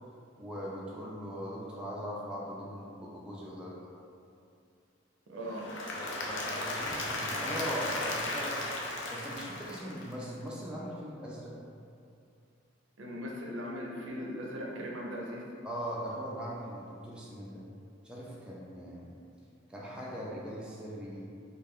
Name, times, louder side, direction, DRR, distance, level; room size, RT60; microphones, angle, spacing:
voice 1, 0.4-3.8 6.0-8.6 9.1-11.5 15.6-17.6 18.0-19.1 19.7-21.3, equal, 5° right, -6 dB, 0.3 m, -40 dB
voice 2, 5.3-5.6 13.0-15.4, equal, 75° right, -2 dB, 0.5 m, -39 dB
Applause / Crowd, 5.4-10.4, left 2 dB, 65° left, 0.5 m, -36 dB
3.2 x 2.3 x 3.5 m, 2.5 s
head